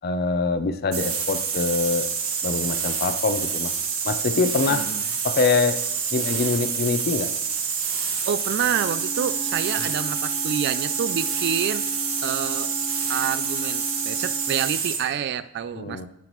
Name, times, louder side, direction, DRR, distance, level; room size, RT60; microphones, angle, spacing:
voice 1, 0.0-2.1 2.4-3.7 4.0-4.9 5.2-5.8 6.1-7.3 9.8-9.9 15.7-16.1, left 4 dB, 50° left, 10 dB, 0.6 m, -24 dB
sound 1, 0.9-15.1, right 6 dB, 75° right, 1.6 m, -27 dB
voice 2, 4.7-5.1 8.2-11.9 12.2-12.7 13.1-16.1, right 8 dB, 55° right, 15 dB, 0.3 m, -28 dB
Wind instrument woodwind instrument, 8.7-14.7, equal, 25° left, 1.2 m, -38 dB
13.5 x 5.8 x 3.1 m, 0.84 s
head